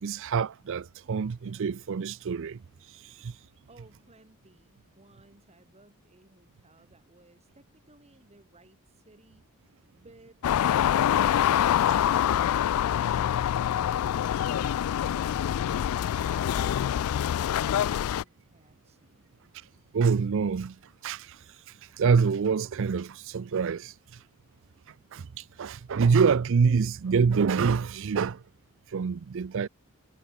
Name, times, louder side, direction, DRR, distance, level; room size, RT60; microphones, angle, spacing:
voice 1, 0.0-3.4 17.9-18.0 19.5-19.7 19.9-20.8 21.0-24.2 24.9-28.4 28.9-29.7, right 5 dB, 60° right, 0.5 m, -26 dB
voice 2, 3.6-12.5 12.8-13.9 14.4-15.1 15.5-19.3, right 2 dB, 30° right, 4.9 m, -59 dB
sound 1, 10.4-18.2, left 10 dB, 75° left, 0.3 m, -25 dB
head